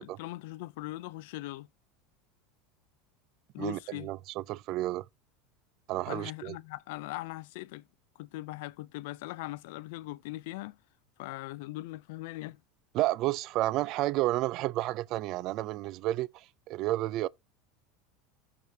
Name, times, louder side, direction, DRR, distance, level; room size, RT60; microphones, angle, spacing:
voice 1, 0.0-1.7 3.5-4.1 6.1-7.8 8.2-10.8 11.2-12.6, left 18 dB, 75° left, 0.4 m, -40 dB
voice 2, 3.6-5.0 5.9-6.6 12.9-17.3, right 16 dB, 55° right, 0.3 m, -31 dB
14.0 x 4.8 x 2.7 m
supercardioid pair, 105°, 0 cm